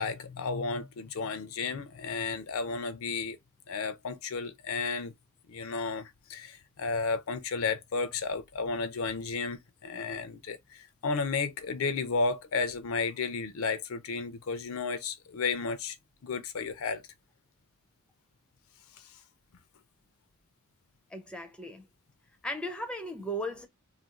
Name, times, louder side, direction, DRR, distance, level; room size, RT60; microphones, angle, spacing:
voice 1, 0.0-3.4 3.7-5.1 5.5-16.0 16.2-17.0, left 4 dB, 65° left, 0.5 m, -33 dB
voice 2, 21.1-21.8 22.4-23.7, equal, 5° left, 0.5 m, -36 dB
2.7 x 2.5 x 2.9 m
head